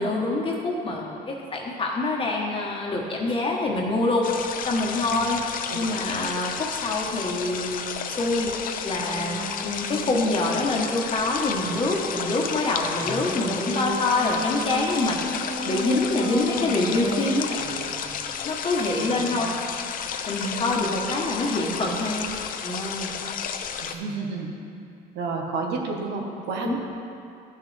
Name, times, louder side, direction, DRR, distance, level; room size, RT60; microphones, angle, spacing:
voice 1, 0.0-4.3 4.6-5.4 5.7-8.5 8.8-17.7 18.4-19.6 20.3-22.3 22.6-23.1 26.6-26.8, left 2 dB, 30° left, -2 dB, 1.1 m, -26 dB
sound 1, 4.2-24.0, left 7 dB, 55° left, 0.6 m, -32 dB
voice 2, 5.7-6.0 19.2-19.5 23.8-24.6 25.1-26.8, right 4 dB, 90° right, 1 dB, 1.3 m, -31 dB
sound 2, 9.0-10.7 13.0-18.0, equal, 35° right, 2.2 m, -33 dB
13.5 x 6.1 x 3.3 m, 2.6 s
cardioid pair, 110°, 17 cm